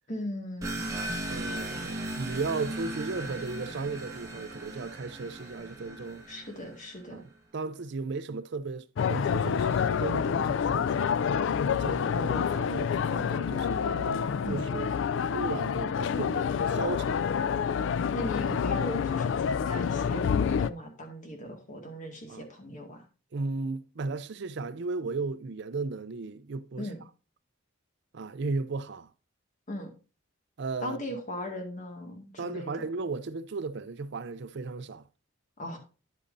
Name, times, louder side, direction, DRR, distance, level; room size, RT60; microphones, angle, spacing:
voice 1, 0.1-0.8 6.3-7.3 14.4-14.7 18.1-23.0 26.8-27.0 29.7-29.9 30.8-32.7 35.6-35.8, left 1 dB, 40° left, 1.9 m, -38 dB
sound 1, 0.6-6.9, right 1 dB, 15° right, 1.7 m, -37 dB
voice 2, 1.3-6.2 7.1-11.1 11.7-14.9 15.3-17.2 22.3-22.5 23.3-26.9 28.1-29.1 30.6-31.2 32.4-35.0, right 3 dB, 55° right, 0.5 m, -35 dB
sound 2, 9.0-20.7, left 7 dB, 60° left, 0.3 m, -28 dB
9.8 x 8.3 x 2.6 m
head